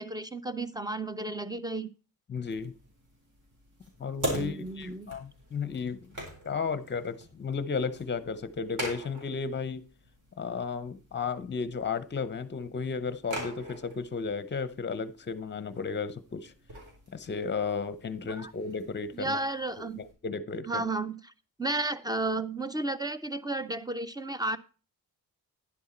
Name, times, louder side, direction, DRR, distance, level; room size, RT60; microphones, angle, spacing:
voice 1, 0.0-1.9 4.3-5.1 18.3-18.5 19.1-20.0 20.7-21.3 21.6-24.6, right 2 dB, 10° right, 14 dB, 0.5 m, -33 dB
voice 2, 2.3-2.7 4.0-6.2 6.4-9.8 10.4-16.5 17.1-19.4 19.8-19.9 20.2-20.7, left 5 dB, 30° left, 14 dB, 0.7 m, -34 dB
sound 1, 2.5-20.1, right 1 dB, 55° right, 4.4 m, -43 dB
10.0 x 7.8 x 4.3 m, 0.35 s
wide cardioid pair, 130°, 37 cm